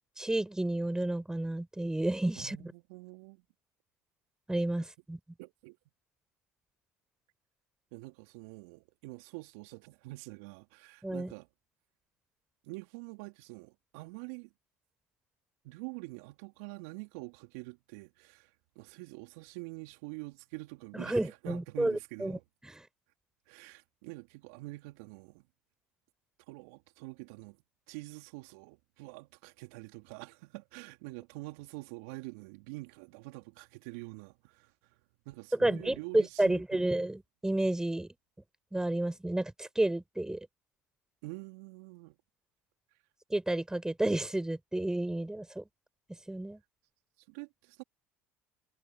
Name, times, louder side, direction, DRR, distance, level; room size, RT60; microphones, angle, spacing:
voice 1, 0.2-2.7 4.5-5.2 11.0-11.3 20.9-22.4 22.6-22.9 35.5-38.1 38.7-40.5 43.3-45.6 46.3-46.6, right 1 dB, 10° right, 6.7 m, -31 dB
voice 2, 2.4-3.4 5.4-5.8 7.9-11.5 12.7-14.5 15.6-22.4 23.5-25.4 26.5-27.6 27.9-34.9 35.3-36.9 41.2-42.2 47.3-47.8, right 25 dB, 70° right, 3.5 m, -46 dB
hypercardioid pair, 70°, 8 cm